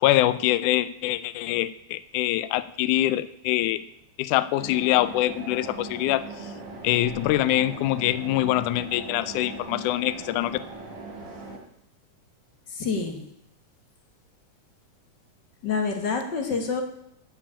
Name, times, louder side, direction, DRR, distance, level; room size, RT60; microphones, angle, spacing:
voice 1, 0.0-3.8 4.2-6.2 6.8-10.6, left 14 dB, 85° left, 14 dB, 2.0 m, -24 dB
sound 1, 4.6-11.6, right 3 dB, 60° right, 3.9 m, -40 dB
voice 2, 12.7-13.2 15.6-16.8, left 5 dB, 45° left, 4 dB, 1.5 m, -27 dB
13.0 x 4.9 x 8.6 m, 0.76 s
omnidirectional pair, 3.6 m